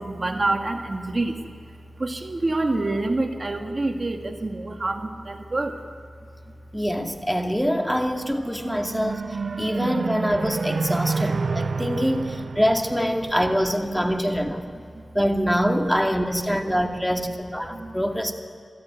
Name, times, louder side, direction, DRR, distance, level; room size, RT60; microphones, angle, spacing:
voice 1, 0.0-1.4 2.0-5.8 8.5-8.9 9.5-9.6 11.0-11.1 14.0-14.1 14.9-15.0 16.5-16.6 16.9-17.0 17.7-18.0, right 2 dB, 45° right, 4 dB, 2.0 m, -27 dB
voice 2, 6.7-9.2 9.6-14.6 15.1-18.3, equal, 5° left, 3 dB, 2.4 m, -24 dB
sound 1, 8.3-13.8, right 4 dB, 70° right, 0.4 m, -29 dB
26.0 x 13.5 x 9.5 m, 2.4 s
cardioid pair, 55°, 0 cm